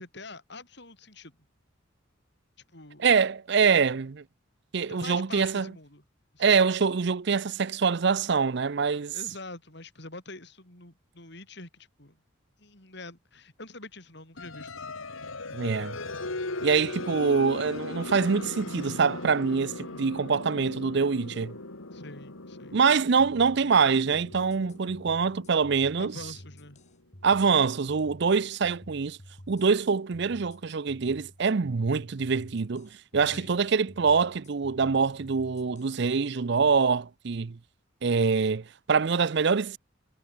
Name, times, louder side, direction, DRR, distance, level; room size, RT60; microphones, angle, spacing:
voice 1, 0.0-1.4 2.7-3.0 4.9-6.0 6.3-6.6 9.1-12.2 12.6-14.7 21.9-22.8 26.0-26.8 33.2-33.5, left 2 dB, 55° left, 7.6 m, -45 dB
voice 2, 3.0-4.2 4.7-5.7 6.4-9.1 15.5-16.0 16.6-21.5 22.7-26.1 27.2-29.2 29.5-37.6 38.0-39.8, right 5 dB, 55° right, 0.5 m, -25 dB
sound 1, 14.4-26.9, left 2 dB, 85° left, 2.6 m, -39 dB
sound 2, 23.2-36.0, equal, 35° left, 4.4 m, -50 dB
head